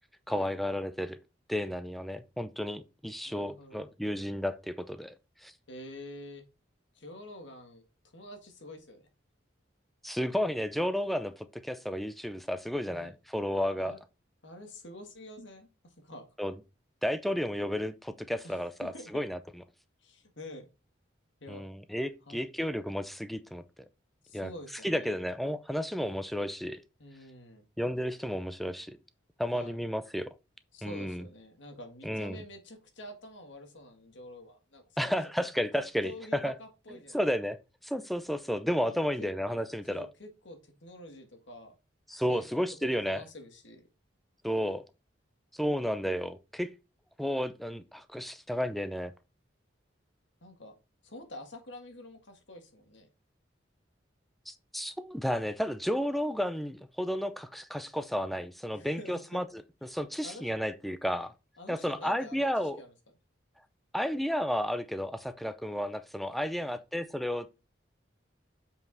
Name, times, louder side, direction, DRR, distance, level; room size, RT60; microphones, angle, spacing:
voice 1, 0.3-1.2 1.5-5.1 5.4-5.5 10.0-14.0 16.4-16.5 17.0-19.4 21.5-23.6 24.3-24.5 24.8-26.8 27.8-29.0 29.4-30.3 30.8-31.2 32.0-32.4 35.0-36.5 37.1-37.6 37.8-40.1 42.1-43.2 44.4-44.8 45.5-46.7 47.2-49.1 54.5-59.4 59.8-61.3 61.7-62.8 63.9-67.5, equal, ahead, 0.5 m, -32 dB
voice 2, 3.3-3.8 5.7-6.4 6.9-7.8 8.1-9.0 12.9-13.1 13.8-14.0 14.4-16.3 18.4-19.1 20.0-20.7 21.4-21.7 22.3-22.4 24.2-25.2 27.0-27.6 29.5-29.8 30.7-35.2 35.8-37.2 38.8-39.3 39.9-41.8 42.3-43.8 50.4-50.7 51.0-53.1 58.7-59.4 60.2-60.5 61.6-62.9 66.5-66.8, left 1 dB, 75° left, 1.9 m, -47 dB
7.6 x 5.4 x 4.0 m
head